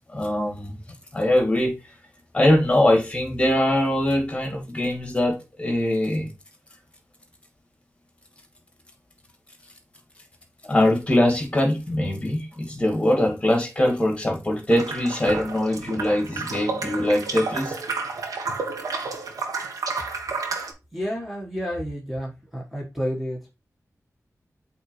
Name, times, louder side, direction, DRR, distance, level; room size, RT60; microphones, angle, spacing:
voice 1, 0.1-0.8 1.1-1.7 2.3-6.3 10.7-17.8, left 1 dB, 20° left, 2 dB, 2.2 m, -22 dB
sound 1, 14.7-20.7, right 4 dB, 80° right, 1.2 m, -31 dB
voice 2, 20.9-23.5, equal, 5° right, -3 dB, 1.6 m, -30 dB
8.0 x 4.0 x 3.2 m, 0.27 s
wide cardioid pair, 115°, 6 cm